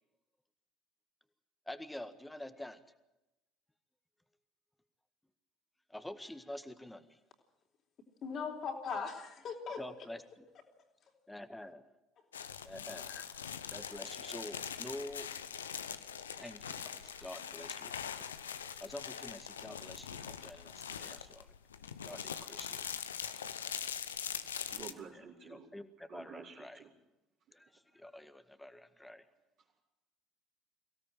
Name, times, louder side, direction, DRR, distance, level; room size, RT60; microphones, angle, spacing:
voice 1, 1.7-2.8 5.9-7.2 9.8-10.2 11.3-11.8 12.6-13.1 13.7-15.3 16.4-18.0 18.8-21.5 22.0-22.8 23.8-23.9 25.5-26.8 27.5-29.3, left 1 dB, 5° left, 10 dB, 1.7 m, -47 dB
voice 2, 8.2-9.8 12.2-12.3 12.9-13.2, left 5 dB, 45° left, 2 dB, 3.8 m, -40 dB
sound 1, 12.3-24.9, left 8 dB, 80° left, 0.8 m, -42 dB
voice 3, 24.7-25.7 26.1-26.9 29.6-29.8, right 6 dB, 55° right, -4 dB, 4.4 m, -50 dB
23.0 x 17.0 x 7.7 m, 0.98 s
figure-of-eight pair, 60°, 0 cm